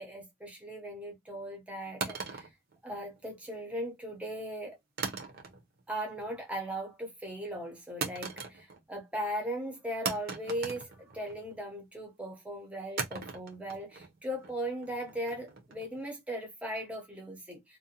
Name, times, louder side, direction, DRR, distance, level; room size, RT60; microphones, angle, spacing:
voice 1, 0.0-2.5 2.8-4.8 5.9-17.8, equal, 5° right, 0.7 m, -38 dB
sound 1, 2.0-3.4 5.0-5.8 6.1-6.6 8.0-9.0 9.2-9.3 10.1-11.6 13.0-16.0, right 5 dB, 50° right, 0.6 m, -39 dB
2.5 x 2.1 x 2.7 m
head